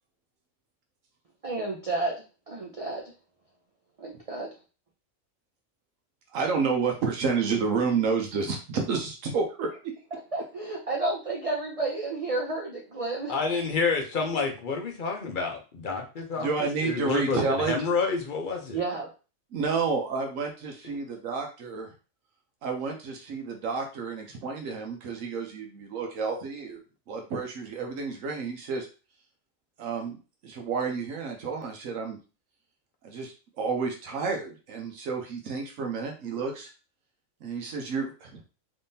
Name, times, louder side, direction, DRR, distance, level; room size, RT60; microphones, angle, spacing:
voice 1, 1.4-2.2 2.5-3.0 4.0-4.5 10.3-13.3 18.7-19.1, right 2 dB, 40° right, -1 dB, 0.5 m, -31 dB
voice 2, 6.3-9.8 16.4-17.7 19.5-21.9 22.6-26.8 27.1-28.9 29.8-30.2 30.4-32.2 33.0-36.7 37.4-38.4, right 5 dB, 80° right, 3 dB, 1.1 m, -30 dB
voice 3, 13.3-18.8, left 4 dB, 45° left, 2 dB, 0.7 m, -29 dB
3.5 x 3.3 x 2.7 m, 0.34 s
omnidirectional pair, 1.4 m